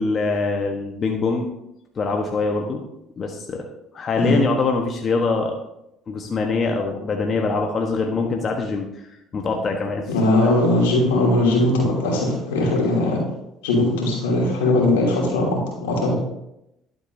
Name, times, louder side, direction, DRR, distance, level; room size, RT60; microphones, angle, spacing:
voice 1, 0.0-1.5 2.0-2.8 3.2-3.7 3.9-5.6 6.1-10.1 10.4-10.6, left 3 dB, 45° left, 2 dB, 1.2 m, -24 dB
voice 2, 10.1-13.2 13.6-16.1, left 2 dB, 85° left, -3 dB, 2.9 m, -20 dB
11.5 x 7.9 x 2.7 m, 0.84 s
hypercardioid pair, 65°, 0 cm